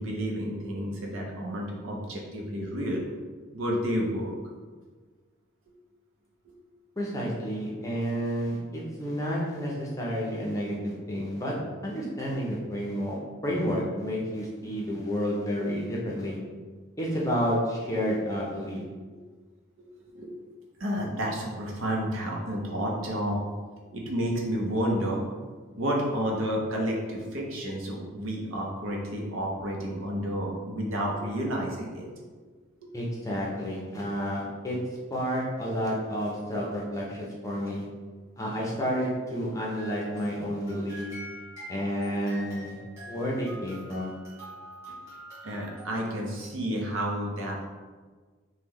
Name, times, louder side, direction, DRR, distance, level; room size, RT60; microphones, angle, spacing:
voice 1, 0.0-3.2 3.5-4.4 19.1-19.2 19.8-20.4 20.8-23.4 23.9-25.2 25.7-32.1 32.8-32.9 44.9-45.0 45.4-47.7, equal, 80° right, -1 dB, 0.7 m, -31 dB
voice 2, 7.0-11.5 11.8-13.2 13.4-16.4 17.0-18.8 32.9-34.8 35.1-37.8 38.4-41.1 41.7-42.8 43.1-44.1, equal, 15° left, -4 dB, 0.5 m, -30 dB
sound 1, 39.8-46.1, right 1 dB, 10° right, 1.2 m, -45 dB
3.1 x 2.2 x 3.6 m, 1.4 s
head